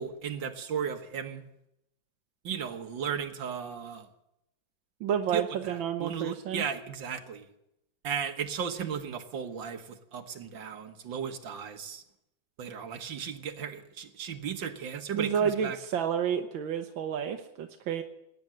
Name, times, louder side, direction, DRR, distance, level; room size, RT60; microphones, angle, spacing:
voice 1, 0.0-1.4 2.4-4.1 5.3-7.5 8.0-12.0 12.6-15.8, right 7 dB, 75° right, 6 dB, 2.1 m, -35 dB
voice 2, 5.0-6.6 15.1-18.0, right 8 dB, 90° right, 5 dB, 1.7 m, -30 dB
19.0 x 9.8 x 7.8 m, 0.83 s
omnidirectional pair, 2.1 m